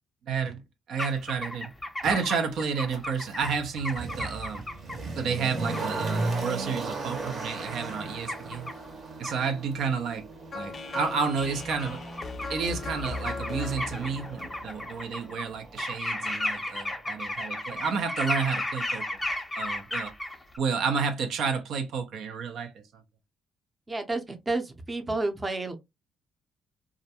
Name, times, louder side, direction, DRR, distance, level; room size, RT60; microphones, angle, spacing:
voice 1, 0.3-0.6 0.9-1.7 2.0-4.6 5.2-8.7 9.2-10.2 10.5-12.0 12.5-19.0 19.6-20.1 20.6-22.7, right 5 dB, 75° right, 0.5 m, -30 dB
sound 1, 1.0-5.0 5.7-5.8 8.3-8.7 9.2-9.3 10.7-10.8 11.7-11.8 12.2-12.6 12.9-15.4 15.8-20.6, left 1 dB, 15° left, 0.7 m, -34 dB
Motor vehicle (road), 2.0-2.1 2.9-15.8 16.1-16.2, right 3 dB, 50° right, 0.8 m, -37 dB
sound 2, 10.5-15.5, left 3 dB, 45° left, 0.4 m, -38 dB
voice 2, 23.9-25.7, right 2 dB, 20° right, 0.6 m, -30 dB
2.3 x 2.1 x 2.7 m
cardioid pair, 90°, 0 cm